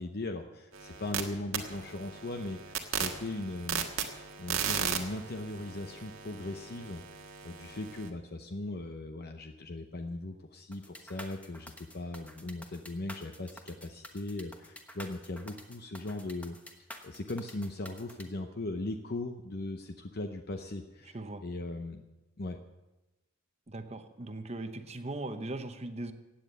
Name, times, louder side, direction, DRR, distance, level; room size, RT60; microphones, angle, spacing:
voice 1, 0.0-16.8 17.0-22.1 22.4-22.6, left 2 dB, 50° left, 6 dB, 0.7 m, -39 dB
sound 1, 0.7-1.2 1.5-8.1, right 7 dB, 85° right, 1.6 m, -37 dB
sound 2, 10.7-18.2, left 1 dB, 5° left, 1.1 m, -49 dB
voice 2, 23.7-26.1, right 2 dB, 30° right, 8 dB, 0.9 m, -39 dB
16.0 x 9.3 x 6.7 m, 1.1 s
head